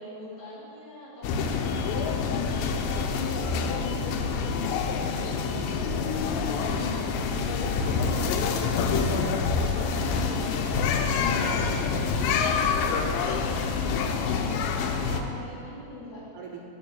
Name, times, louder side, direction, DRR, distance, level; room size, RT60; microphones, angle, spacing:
voice 1, 0.0-9.3 14.0-16.2, left 2 dB, 50° left, -8 dB, 2.7 m, -42 dB
sound 1, 1.2-15.2, left 5 dB, 90° left, 2.8 m, -27 dB
voice 2, 7.8-8.3 9.5-13.2 14.9-15.4 16.3-16.7, right 4 dB, 80° right, 1 dB, 2.5 m, -43 dB
7.3 x 6.0 x 7.4 m, 2.8 s
omnidirectional pair, 4.8 m